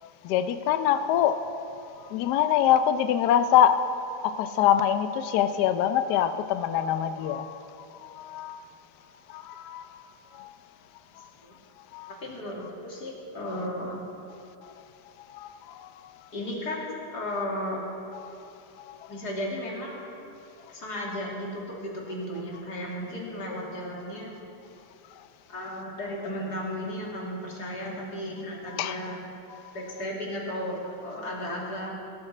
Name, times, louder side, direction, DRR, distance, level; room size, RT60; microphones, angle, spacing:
voice 1, 0.2-1.4 2.0-3.8 4.2-7.5 8.0-8.6 9.3-10.0 10.3-10.5 11.9-12.1 15.3-15.9 18.2-18.5 18.9-19.1 28.7-29.0 29.5-29.6, left 10 dB, 70° left, 10 dB, 1.1 m, -25 dB
voice 2, 12.2-14.0 16.3-17.9 19.1-20.1 20.7-24.4 25.5-29.2 29.7-31.9, left 1 dB, 50° left, -3 dB, 2.7 m, -34 dB
19.5 x 13.0 x 3.3 m, 2.8 s
omnidirectional pair, 2.2 m